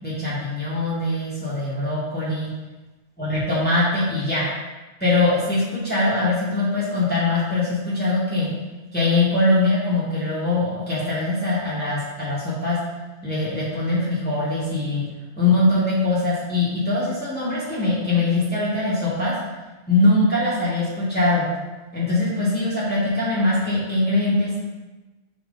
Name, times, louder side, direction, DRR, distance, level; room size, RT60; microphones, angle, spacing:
voice 1, 0.0-2.5 3.2-4.5 5.0-8.5 8.9-12.8 13.2-15.0 15.4-19.3 19.9-21.5 21.9-24.6, left 2 dB, 10° left, -9 dB, 1.7 m, -22 dB
6.1 x 4.4 x 4.0 m, 1.2 s
omnidirectional pair, 1.2 m